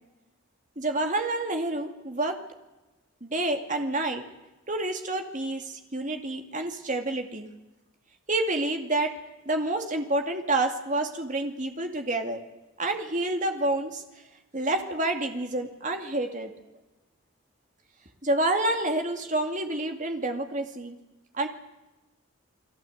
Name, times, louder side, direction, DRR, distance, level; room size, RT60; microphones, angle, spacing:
voice 1, 0.8-2.4 3.2-4.2 4.7-7.5 8.3-9.1 9.5-12.4 12.8-14.0 14.5-16.5 18.2-21.0 21.3-21.5, right 2 dB, 35° right, 4 dB, 2.4 m, -28 dB
29.5 x 20.0 x 8.0 m, 1.1 s
head